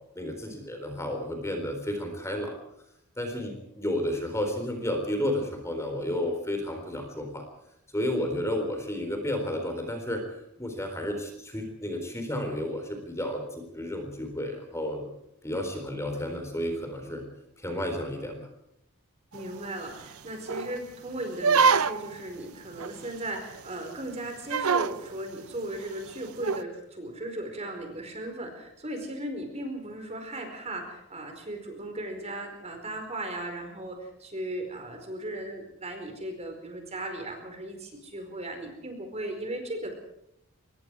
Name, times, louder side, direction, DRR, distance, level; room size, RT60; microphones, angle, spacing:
voice 1, 0.2-2.5 3.2-7.4 7.9-15.1 15.4-17.3 17.6-18.5, left 1 dB, 15° left, 4 dB, 4.0 m, -32 dB
voice 2, 19.3-39.9, right 1 dB, 30° right, 4 dB, 4.7 m, -37 dB
sound 1, 19.3-19.4 19.9-20.0 20.5-20.8 21.4-22.2 22.8-22.9 23.3-23.4 23.7-23.8 24.5-24.9 26.4-26.6, right 5 dB, 75° right, 0.7 m, -24 dB
25.0 x 21.5 x 4.8 m, 0.78 s
head